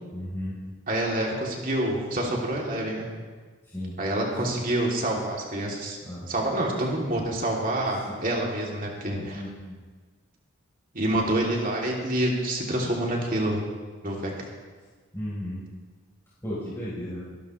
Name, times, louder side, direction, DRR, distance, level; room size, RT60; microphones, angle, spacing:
voice 1, 0.1-0.6 3.7-3.9 6.1-6.2 9.3-9.8 15.1-15.6 16.4-17.2, equal, 15° left, -11 dB, 4.0 m, -34 dB
voice 2, 0.9-3.1 4.0-6.0 6.3-9.4 10.9-13.6 14.0-14.3, right 1 dB, 40° right, -2 dB, 2.8 m, -27 dB
25.0 x 12.0 x 3.2 m, 1.4 s
head